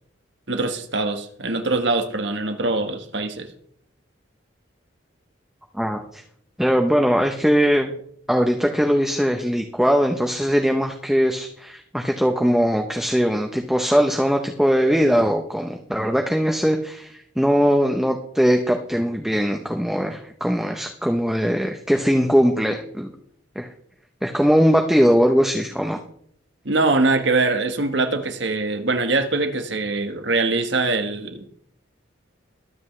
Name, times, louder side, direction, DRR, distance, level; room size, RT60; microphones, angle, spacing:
voice 1, 0.5-3.5 26.6-31.4, right 3 dB, 65° right, 1.4 m, -23 dB
voice 2, 5.7-6.2 6.6-7.9 8.3-23.1 23.6-23.7 24.2-26.0, equal, ahead, 0.8 m, -20 dB
22.0 x 8.1 x 3.3 m
head